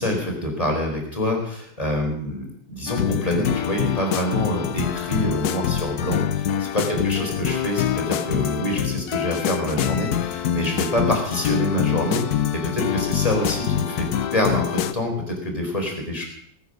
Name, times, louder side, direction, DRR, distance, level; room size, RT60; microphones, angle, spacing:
voice 1, 0.0-16.2, left 1 dB, 15° left, 1 dB, 4.2 m, -26 dB
sound 1, 2.9-14.9, left 10 dB, 65° left, 1.1 m, -25 dB
19.5 x 9.3 x 6.3 m, 0.68 s
omnidirectional pair, 2.2 m